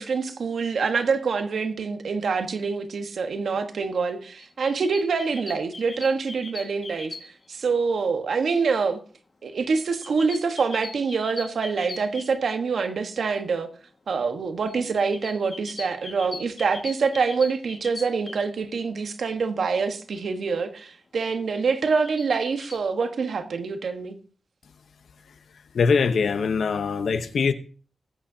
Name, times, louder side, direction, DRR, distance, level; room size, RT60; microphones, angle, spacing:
voice 1, 0.0-7.1 7.5-9.0 9.4-13.7 14.1-24.2, right 5 dB, 80° right, 1.3 m, -25 dB
sound 1, 4.4-7.6 9.7-12.8 14.7-18.4 21.6-22.8, left 3 dB, 50° left, 1.7 m, -41 dB
voice 2, 25.7-27.5, left 5 dB, 85° left, 0.9 m, -22 dB
20.0 x 8.8 x 2.8 m
wide cardioid pair, 95°, 0 cm